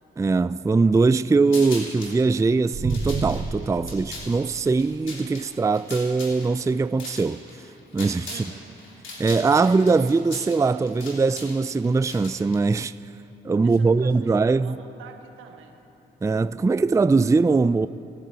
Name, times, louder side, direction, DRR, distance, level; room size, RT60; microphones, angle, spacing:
voice 1, 0.2-7.4 7.9-8.4 9.2-12.9 13.4-14.8 16.2-17.9, right 4 dB, 15° right, 0.4 m, -21 dB
sound 1, 1.5-2.2 2.7-8.5 8.8-12.6, left 2 dB, 75° left, 3.3 m, -40 dB
sound 2, 2.7-5.0, right 4 dB, 50° right, 1.8 m, -30 dB
voice 2, 8.3-8.8 13.6-14.1 14.4-15.8, right 7 dB, 85° right, 1.3 m, -45 dB
28.0 x 9.9 x 4.1 m
supercardioid pair, 55°, 20 cm